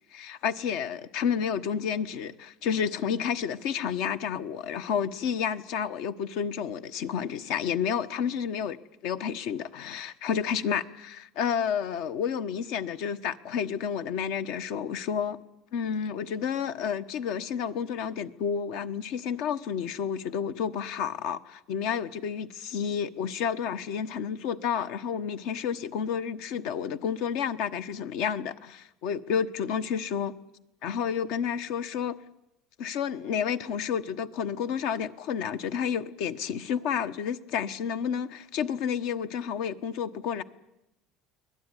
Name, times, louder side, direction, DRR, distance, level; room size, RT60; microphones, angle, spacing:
voice 1, 0.1-15.4 15.7-30.3 30.8-32.2 32.8-40.4, left 7 dB, 65° left, 13 dB, 1.2 m, -30 dB
24.0 x 18.0 x 9.9 m, 0.90 s
cardioid pair, 150°, 0 cm